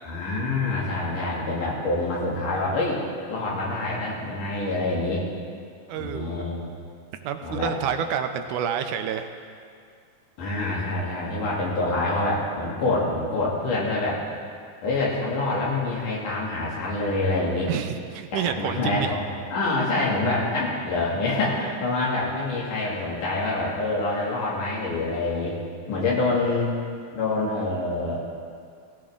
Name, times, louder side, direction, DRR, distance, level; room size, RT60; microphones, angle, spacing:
voice 1, 0.0-5.3 6.0-6.6 7.4-7.7 10.4-14.2 14.8-17.7 18.3-19.2 19.5-25.6 25.9-26.7 27.1-28.2, left 2 dB, 80° left, -5 dB, 4.1 m, -26 dB
voice 2, 5.9-6.4 7.1-9.3 17.7-19.1, right 8 dB, 85° right, 7 dB, 2.2 m, -29 dB
17.0 x 14.5 x 3.7 m, 2.2 s
omnidirectional pair, 3.5 m